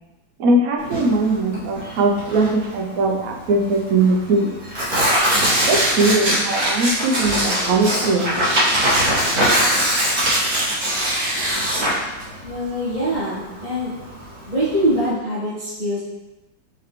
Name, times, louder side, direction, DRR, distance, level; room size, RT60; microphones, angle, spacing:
voice 1, 0.4-4.5 5.7-8.3, right 2 dB, 75° right, 0 dB, 0.8 m, -20 dB
Tearing, 0.8-15.1, right 1 dB, 50° right, 1.9 m, -22 dB
voice 2, 12.4-13.9 14.5-16.0, equal, 25° right, -12 dB, 1.2 m, -23 dB
4.3 x 3.9 x 3.0 m, 1.0 s
omnidirectional pair, 2.3 m